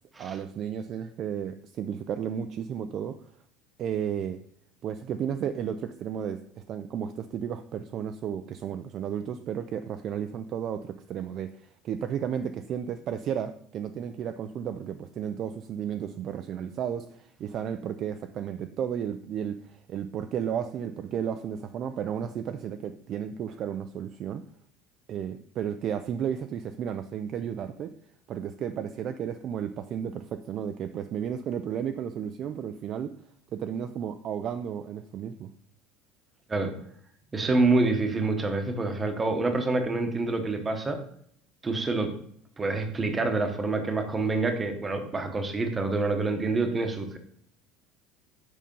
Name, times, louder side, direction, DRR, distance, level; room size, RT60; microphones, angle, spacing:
voice 1, 0.2-3.3 3.8-4.4 4.8-24.4 25.1-28.0 28.3-33.2 33.5-35.5, right 8 dB, 30° right, 9 dB, 0.3 m, -33 dB
voice 2, 37.3-41.0 41.6-42.1 42.6-47.2, right 3 dB, 10° right, 6 dB, 0.9 m, -27 dB
7.5 x 5.6 x 5.3 m, 0.66 s
cardioid pair, 175°, 0 cm